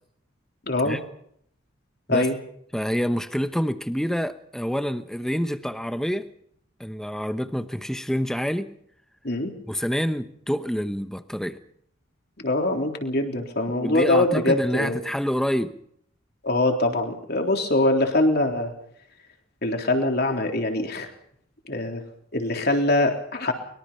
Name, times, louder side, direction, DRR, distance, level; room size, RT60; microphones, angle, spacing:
voice 1, 0.7-1.0 2.1-2.4 9.2-9.5 12.4-15.0 16.4-18.7 19.6-21.1 21.7-22.0 22.3-23.5, left 2 dB, 50° left, 3 dB, 3.6 m, -23 dB
voice 2, 2.7-6.3 6.8-8.7 9.7-11.6 13.8-15.7, equal, ahead, 10 dB, 1.0 m, -27 dB
24.0 x 22.0 x 5.6 m, 0.68 s
head